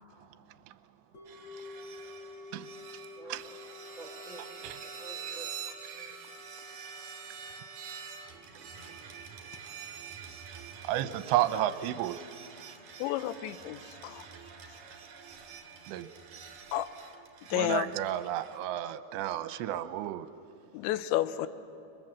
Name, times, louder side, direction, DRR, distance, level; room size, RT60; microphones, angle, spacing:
sound 1, 1.1-11.4 11.7-11.8, left 3 dB, 15° left, 5.9 m, -51 dB
sound 2, 1.3-18.6, right 6 dB, 50° right, 3.2 m, -46 dB
voice 1, 3.2-3.7 4.0-6.2, right 1 dB, 15° right, 1 dB, 1.9 m, -50 dB
voice 2, 10.8-12.2 15.9-16.1 17.5-20.3, right 12 dB, 80° right, 12 dB, 2.8 m, -31 dB
voice 3, 13.0-14.2 16.7-16.9 17.5-17.9 20.7-21.5, left 14 dB, 80° left, 13 dB, 3.0 m, -31 dB
30.0 x 23.0 x 7.5 m, 2.7 s
omnidirectional pair, 5.4 m